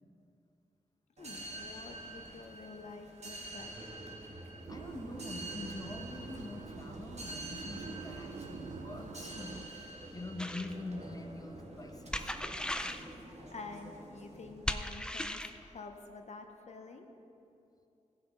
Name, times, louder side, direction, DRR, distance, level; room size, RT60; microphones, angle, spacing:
voice 1, 1.2-3.9 13.5-17.1, left 3 dB, 60° left, 4 dB, 0.9 m, -48 dB
sound 1, 1.2-14.7, right 1 dB, 55° right, 1.7 m, -47 dB
voice 2, 4.7-12.5, left 2 dB, 30° left, 4 dB, 1.1 m, -45 dB
sound 2, 4.7-9.7, right 5 dB, 80° right, 0.6 m, -47 dB
sound 3, 10.4-10.7 12.1-13.1 14.7-15.6, left 1 dB, 5° left, 0.5 m, -37 dB
15.0 x 5.9 x 5.6 m, 2.7 s
cardioid pair, 65°, 13 cm